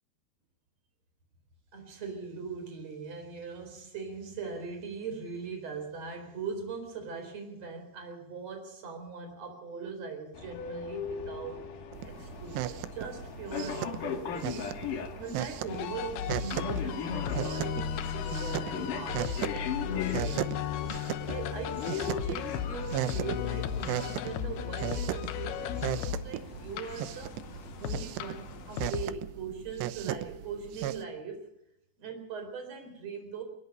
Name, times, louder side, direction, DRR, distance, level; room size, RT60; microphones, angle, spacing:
voice 1, 1.7-11.6 12.0-20.4 21.2-27.3 27.8-31.4 32.0-33.4, right 5 dB, 35° right, 4 dB, 5.1 m, -40 dB
sound 1, 10.3-28.9, left 6 dB, 55° left, 2.6 m, -40 dB
sound 2, 11.9-31.0, right 13 dB, 75° right, 2.7 m, -37 dB
sound 3, 15.7-29.0, left 9 dB, 75° left, 2.4 m, -35 dB
22.5 x 22.0 x 5.5 m, 0.82 s
omnidirectional pair, 5.6 m